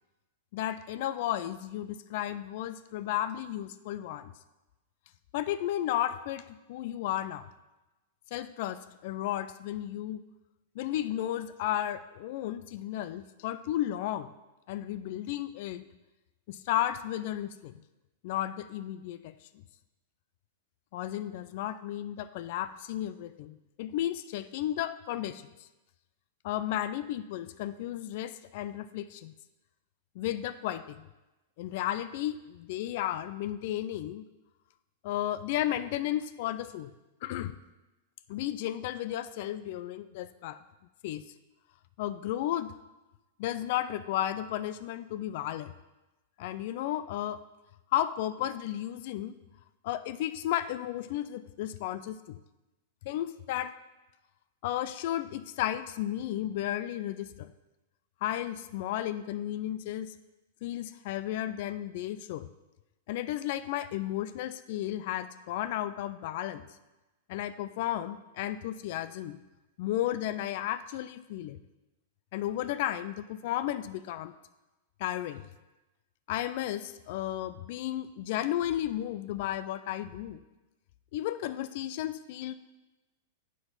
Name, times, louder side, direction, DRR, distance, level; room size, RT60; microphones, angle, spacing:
voice 1, 0.5-4.3 5.3-7.5 8.3-10.2 10.8-14.3 14.7-15.8 16.5-17.8 18.2-19.3 20.9-25.7 26.4-29.3 30.2-31.1 31.6-34.3 35.0-36.9 37.2-37.6 38.3-40.6 41.0-41.3 42.0-42.7 43.4-45.7 46.4-47.4 47.9-49.4 49.8-52.4 53.1-53.8 54.6-57.5 58.2-60.1 60.6-62.5 63.1-66.7 67.3-69.4 69.8-71.6 72.3-74.3 75.0-75.5 76.3-80.4 81.1-82.5, left 12 dB, 60° left, 13 dB, 0.3 m, -33 dB
7.7 x 6.1 x 4.0 m, 1.1 s
hypercardioid pair, 110°, 0 cm